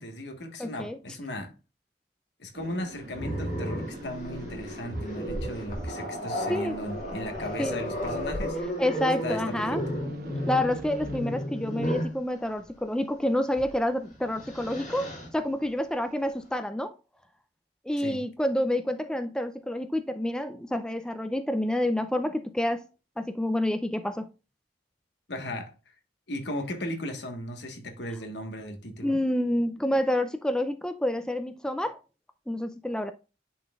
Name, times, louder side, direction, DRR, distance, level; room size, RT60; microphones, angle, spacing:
voice 1, 0.0-1.5 2.4-8.6 9.2-9.8 18.0-18.2 25.3-25.7 26.3-29.2, left 1 dB, 75° left, 1.3 m, -36 dB
voice 2, 0.6-1.0 6.5-6.8 7.6-7.8 8.8-9.8 10.5-16.9 17.9-22.8 23.2-24.3 29.0-32.0 32.5-33.1, left 1 dB, 5° left, 0.4 m, -28 dB
sound 1, 2.5-11.2, right 2 dB, 55° right, 0.8 m, -45 dB
Growling, 3.1-12.2 13.5-13.7 14.1-15.3, equal, 40° left, 2.3 m, -33 dB
10.0 x 4.2 x 2.3 m
head